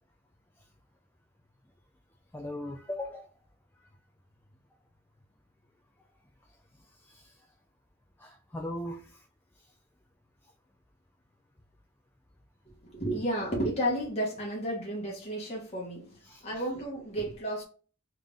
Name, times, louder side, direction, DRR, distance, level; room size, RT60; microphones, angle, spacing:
voice 1, 2.3-3.3 6.9-7.5 8.2-9.2 9.6-9.7 16.2-16.6, left 1 dB, 10° left, 0.3 m, -40 dB
voice 2, 12.9-16.2 16.4-17.6, equal, 30° left, 1.0 m, -32 dB
3.6 x 3.3 x 2.6 m
head